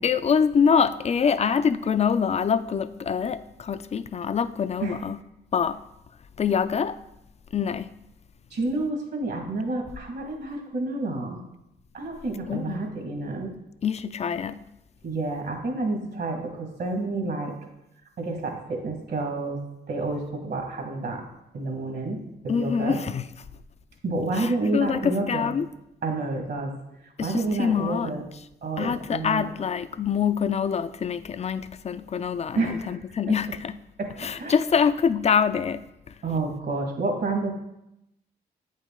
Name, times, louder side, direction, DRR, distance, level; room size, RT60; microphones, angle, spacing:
voice 1, 0.0-5.2 5.5-5.8 6.4-7.0 7.5-7.9 12.5-12.9 13.8-14.6 22.5-23.2 24.3-25.7 27.2-28.1 28.8-33.8 34.2-36.2, left 6 dB, 35° left, 0.4 m, -25 dB
voice 2, 8.5-11.4 11.9-13.5 15.0-17.5 18.2-19.6 19.9-21.2 21.5-23.0 24.0-25.5 26.0-26.8 27.2-28.2 28.6-29.5 32.6-33.0 34.0-34.5 36.2-37.5, right 2 dB, 65° right, 1.8 m, -29 dB
8.3 x 5.3 x 3.7 m
cardioid pair, 65°, 18 cm